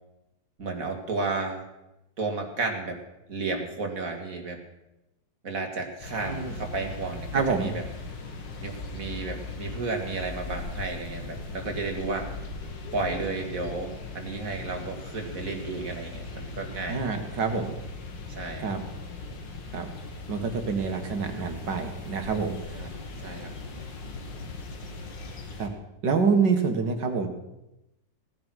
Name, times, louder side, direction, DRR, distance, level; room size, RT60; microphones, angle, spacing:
voice 1, 0.6-1.7 2.2-3.0 3.3-4.6 5.4-7.8 8.6-12.3 12.9-17.0 18.3-18.7 22.7-22.9 23.2-23.5, right 3 dB, 45° right, 3 dB, 2.6 m, -32 dB
sound 1, 6.0-25.7, left 3 dB, 75° left, 2.4 m, -39 dB
voice 2, 7.3-7.7 16.9-17.7 18.6-18.8 19.7-19.9 20.3-22.8 25.6-25.7 26.0-27.3, right 5 dB, 70° right, 5 dB, 2.3 m, -27 dB
18.0 x 10.5 x 6.4 m, 0.93 s
omnidirectional pair, 2.0 m